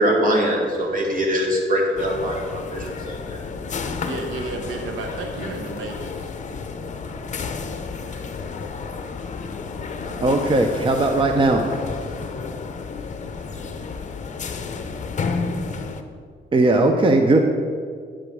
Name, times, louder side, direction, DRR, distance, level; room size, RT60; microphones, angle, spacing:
voice 1, 0.0-3.4, equal, 45° right, 0 dB, 2.1 m, -22 dB
sound 1, 2.0-16.0, left 4 dB, 40° left, 0.7 m, -31 dB
voice 2, 4.0-6.3, right 3 dB, 90° right, 3 dB, 0.9 m, -32 dB
voice 3, 10.0-11.6 16.5-17.4, right 2 dB, 25° right, 4 dB, 0.7 m, -18 dB
8.9 x 5.1 x 6.2 m, 2.1 s
cardioid pair, 90°, 20 cm